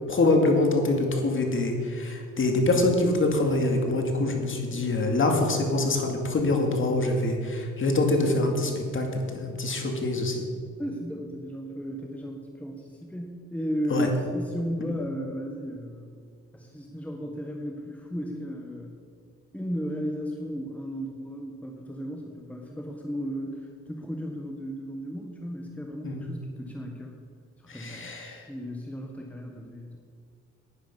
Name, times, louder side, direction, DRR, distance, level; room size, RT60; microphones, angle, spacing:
voice 1, 0.1-10.5 13.9-14.1 14.9-15.0 26.0-26.3 27.7-28.4, left 2 dB, 40° left, 2 dB, 2.3 m, -25 dB
voice 2, 10.8-16.1 16.5-18.9 19.5-27.1 27.6-30.0, equal, 5° left, 1 dB, 1.3 m, -35 dB
10.5 x 10.0 x 5.5 m, 2.2 s
cardioid pair, 90°, 30 cm